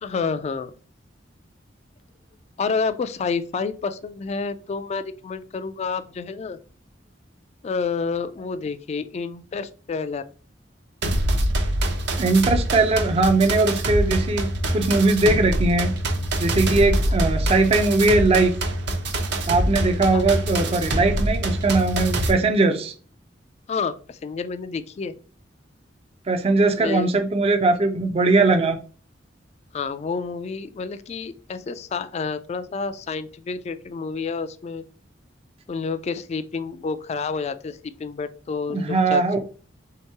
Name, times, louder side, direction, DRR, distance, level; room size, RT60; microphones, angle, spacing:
voice 1, 0.0-0.7 2.6-6.6 7.6-10.2 19.9-20.3 23.7-25.1 26.8-27.1 29.7-34.8 35.7-39.2, left 5 dB, 35° left, 11 dB, 0.3 m, -29 dB
sound 1, 11.0-22.3, right 1 dB, 65° right, 0.7 m, -24 dB
voice 2, 12.2-16.0 16.4-18.6 19.5-22.9 26.3-28.8 38.7-39.4, right 3 dB, 35° right, 6 dB, 0.4 m, -20 dB
3.5 x 2.9 x 4.5 m, 0.39 s
head